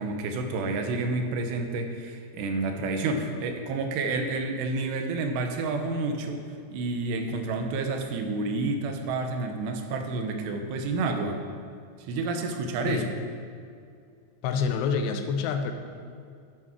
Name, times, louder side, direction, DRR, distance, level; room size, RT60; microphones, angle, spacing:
voice 1, 0.0-11.4 12.1-13.1, right 3 dB, 90° right, 4 dB, 3.1 m, -29 dB
voice 2, 14.4-15.7, left 6 dB, 85° left, 6 dB, 2.9 m, -27 dB
9.9 x 7.4 x 6.0 m, 2.3 s
omnidirectional pair, 4.7 m